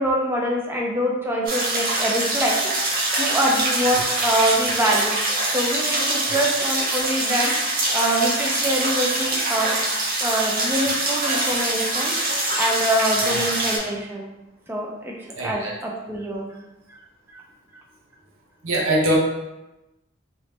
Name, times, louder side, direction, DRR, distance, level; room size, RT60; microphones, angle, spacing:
voice 1, 0.0-2.6 3.1-5.2 5.5-7.5 7.9-9.8 10.2-12.1 12.5-14.3 14.7-16.5 17.3-17.4, right 1 dB, 10° right, -2 dB, 0.5 m, -24 dB
sound 1, 1.5-13.8, right 2 dB, 45° right, 0.7 m, -24 dB
voice 2, 15.3-15.7 18.6-19.2, right 1 dB, 80° right, -2 dB, 0.8 m, -23 dB
3.2 x 2.7 x 3.3 m, 0.96 s
head